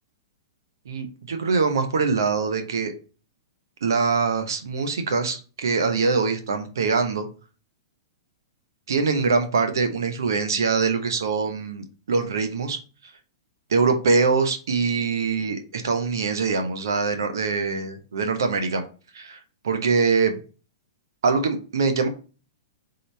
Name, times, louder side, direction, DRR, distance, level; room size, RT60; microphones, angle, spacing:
voice 1, 0.9-2.9 3.8-7.3 8.9-12.8 13.7-18.8 19.1-19.4 19.6-20.4 21.2-22.1, right 4 dB, 75° right, 7 dB, 0.9 m, -23 dB
3.9 x 3.9 x 3.3 m, 0.36 s
hypercardioid pair, 120°, 2 cm